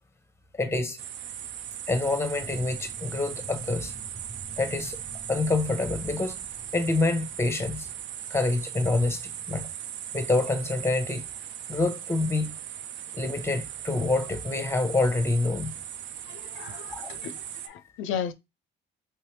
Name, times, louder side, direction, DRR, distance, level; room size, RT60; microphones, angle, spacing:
voice 1, 0.6-1.0 1.9-3.9 4.6-5.0 5.3-6.4 6.7-7.9 8.3-9.2 9.5-9.7 10.1-11.3 11.7-12.6 13.1-15.7 16.9-17.1, left 2 dB, 15° left, 0.8 m, -26 dB
sound 1, 1.0-17.7, right 10 dB, 70° right, 0.4 m, -38 dB
sound 2, 1.9-8.4, right 1 dB, 25° right, 0.7 m, -47 dB
voice 2, 16.3-17.3 17.6-18.3, left 8 dB, 85° left, 0.4 m, -34 dB
3.2 x 3.2 x 3.1 m
cardioid pair, 90°, 20 cm